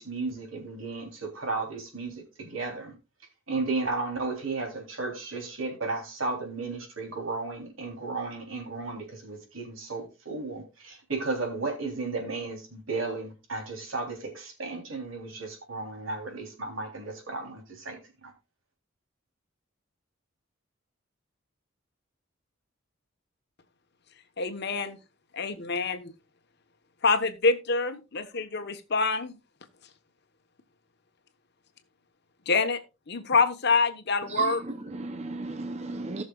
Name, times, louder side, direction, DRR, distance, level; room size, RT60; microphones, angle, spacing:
voice 1, 0.0-3.0 3.5-18.0 18.2-18.3, right 3 dB, 80° right, 3.4 m, -34 dB
voice 2, 24.4-25.0 25.3-26.1 27.0-29.4 32.5-32.8 33.1-34.6, left 4 dB, 55° left, 1.1 m, -26 dB
voice 3, 34.3-36.2, right 5 dB, 35° right, 0.7 m, -33 dB
18.0 x 6.4 x 2.4 m
head